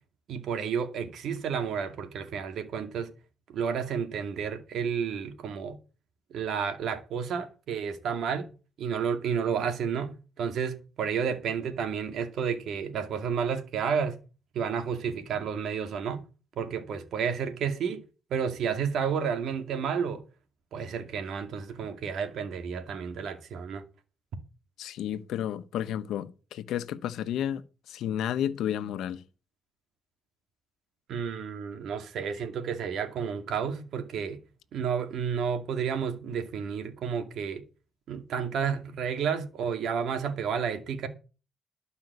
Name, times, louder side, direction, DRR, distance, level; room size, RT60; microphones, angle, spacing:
voice 1, 0.3-3.1 3.5-5.8 6.3-8.5 8.8-14.2 14.5-16.2 16.6-18.0 18.3-20.2 20.7-23.8 31.1-34.4 34.7-37.6 38.1-41.1, right 7 dB, 70° right, 2.2 m, -31 dB
voice 2, 24.8-29.2, left 10 dB, 80° left, 1.1 m, -32 dB
12.5 x 5.5 x 8.2 m
cardioid pair, 90°, 0 cm